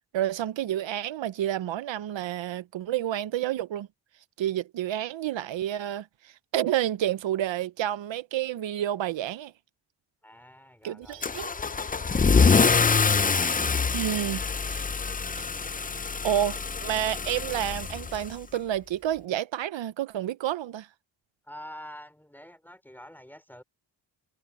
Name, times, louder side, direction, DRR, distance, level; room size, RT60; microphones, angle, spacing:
voice 1, 0.1-3.9 4.4-9.5 10.8-11.5 13.6-14.4 14.7-14.8 15.4-15.5 16.2-20.9, right 11 dB, 80° right, 0.7 m, -30 dB
voice 2, 10.2-11.9 21.4-23.6, equal, 5° left, 4.1 m, -47 dB
Car / Engine starting / Accelerating revving vroom, 11.2-18.6, left 5 dB, 20° left, 0.5 m, -25 dB
cardioid pair, 85°, 44 cm